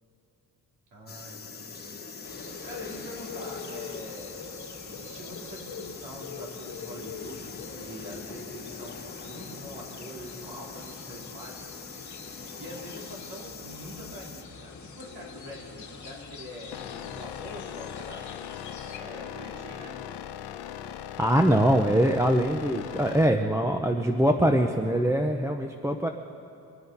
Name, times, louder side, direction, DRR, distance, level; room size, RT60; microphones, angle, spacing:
voice 1, 0.9-2.0 2.6-4.5 4.8-11.8 12.6-18.2 18.8-20.0, equal, 75° right, -4 dB, 4.3 m, -44 dB
sound 1, 1.1-14.4, left 4 dB, 25° left, 1.2 m, -43 dB
sound 2, 2.2-19.0, left 5 dB, 45° left, 1.8 m, -44 dB
sound 3, 16.7-23.3, left 10 dB, 90° left, 0.8 m, -39 dB
voice 2, 21.2-26.1, right 1 dB, 5° right, 4 dB, 0.6 m, -23 dB
24.0 x 9.3 x 5.5 m, 2.8 s
cardioid pair, 110°, 39 cm